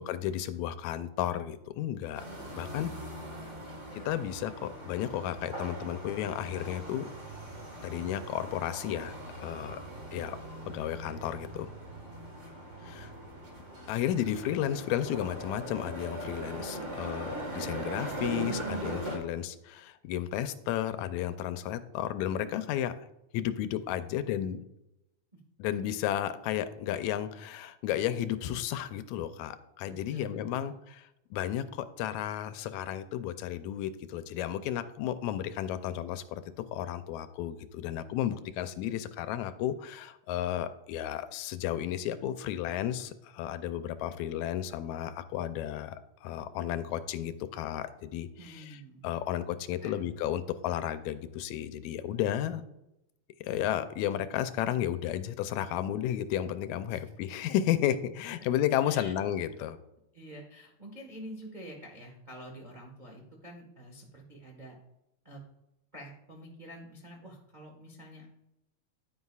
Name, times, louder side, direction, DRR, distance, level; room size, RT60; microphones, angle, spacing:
voice 1, 0.0-2.2 2.5-2.9 3.9-7.1 7.8-9.8 10.1-10.4 10.7-11.7 12.8-13.1 13.9-22.9 23.3-24.6 25.6-36.4 36.7-48.8 49.0-52.6 53.4-59.8, left 11 dB, 80° left, 11 dB, 1.9 m, -33 dB
sound 1, 2.1-19.2, right 1 dB, 35° right, 1.4 m, -40 dB
voice 2, 29.8-30.8 48.4-49.1 49.8-50.0 56.9-57.0 58.4-58.5 58.8-59.1 60.1-64.7 65.2-65.4 65.9-68.3, equal, 80° right, -1 dB, 0.4 m, -48 dB
10.0 x 9.5 x 2.4 m, 0.87 s
omnidirectional pair, 3.3 m